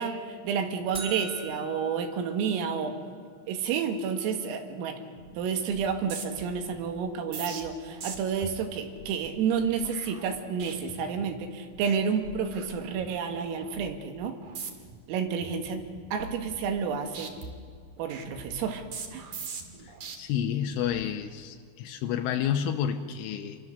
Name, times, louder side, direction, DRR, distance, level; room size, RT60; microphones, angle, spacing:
voice 1, 0.0-3.0 3.5-5.0 5.4-14.4 15.1-17.3 18.0-18.8 19.1-19.2, right 6 dB, 90° right, 5 dB, 4.4 m, -30 dB
sound 1, 0.9-3.1, right 3 dB, ahead, 1.6 m, -43 dB
sound 2, 5.2-5.4 5.7-11.4 11.7-12.0 12.2-13.2 13.6-13.9 14.4-15.0 15.4-16.9 17.1-20.1 20.7-21.0, right 5 dB, 55° right, 2.5 m, -43 dB
voice 2, 19.8-23.6, left 9 dB, 80° left, 5 dB, 3.3 m, -30 dB
28.0 x 23.0 x 6.6 m, 2.1 s
omnidirectional pair, 5.8 m